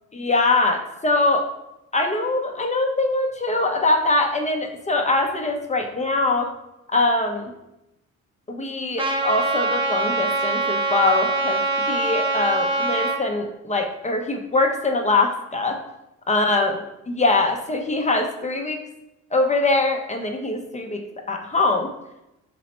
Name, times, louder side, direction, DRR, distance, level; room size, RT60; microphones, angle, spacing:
voice 1, 0.1-1.4 1.9-6.5 6.9-7.5 8.5-15.8 16.3-16.7 17.1-18.8 19.3-21.0 21.3-21.9, left 2 dB, 25° left, 4 dB, 0.6 m, -22 dB
Trumpet, 9.0-13.2, right 3 dB, 15° right, 0.7 m, -23 dB
4.0 x 3.1 x 4.3 m, 0.90 s
cardioid pair, 90°, 30 cm